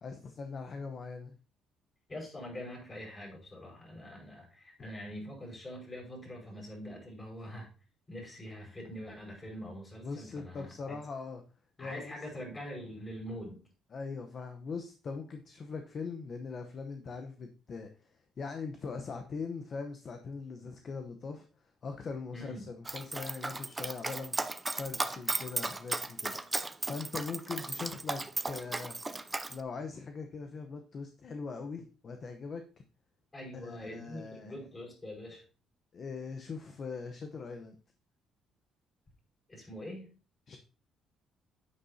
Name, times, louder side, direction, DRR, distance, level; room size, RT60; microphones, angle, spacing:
voice 1, 0.0-1.3 6.5-6.6 10.0-11.4 11.8-12.1 13.9-18.1 18.4-21.5 21.8-24.4 24.8-29.0 29.5-32.6 33.6-34.5 35.9-37.8 40.5-40.6, left 4 dB, 40° left, 5 dB, 0.9 m, -41 dB
voice 2, 2.1-7.7 8.1-11.0 11.8-13.6 22.3-22.7 33.3-35.4 39.5-40.1, equal, 20° left, -1 dB, 5.1 m, -44 dB
Dog, 22.9-29.6, right 2 dB, 15° right, 0.5 m, -35 dB
9.6 x 8.5 x 2.8 m, 0.36 s
cardioid pair, 125°, 0 cm